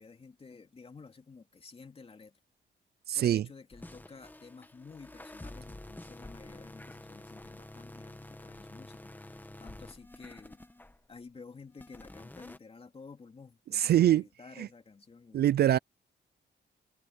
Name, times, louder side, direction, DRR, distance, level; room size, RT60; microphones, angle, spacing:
voice 1, 0.0-2.4 3.1-9.0 9.3-10.6 11.1-15.4, left 4 dB, 30° left, 2.5 m, -52 dB
voice 2, 3.1-3.5 13.7-14.2 14.6-14.7 15.3-15.8, right 12 dB, 60° right, 0.4 m, -24 dB
sound 1, 3.7-11.2 11.7-12.6, left 1 dB, 10° left, 1.5 m, -49 dB
cardioid pair, 105°, 19 cm